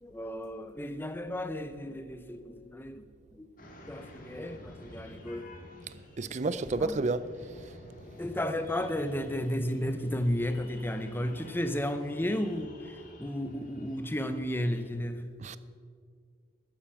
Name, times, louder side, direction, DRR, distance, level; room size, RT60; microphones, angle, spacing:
voice 1, 0.0-3.0 3.3-3.5 3.9-5.5 6.8-7.0 8.2-15.2, left 1 dB, 10° left, 0.6 m, -33 dB
sound 1, 3.6-14.8, left 1 dB, 40° left, 1.9 m, -50 dB
voice 2, 6.2-7.7 15.4-15.6, right 3 dB, 35° right, 0.4 m, -31 dB
14.0 x 9.6 x 5.8 m
head